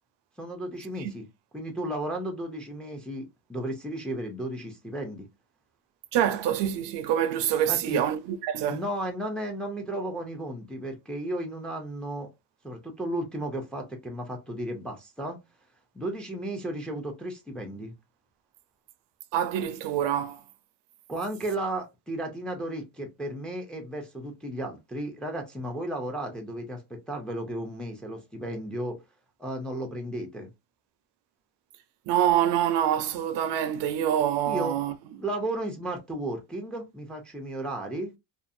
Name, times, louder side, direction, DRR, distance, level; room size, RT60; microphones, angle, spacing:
voice 1, 0.4-1.3 1.5-5.2 7.7-8.0 8.7-12.3 12.6-15.4 15.9-17.9 21.1-29.0 29.4-30.5 34.5-34.7 35.2-38.1, right 1 dB, ahead, 0.4 m, -34 dB
voice 2, 6.1-8.8 19.3-20.4 32.1-34.9, right 10 dB, 60° right, 0.5 m, -26 dB
2.5 x 2.4 x 2.6 m
cardioid pair, 120°, 49 cm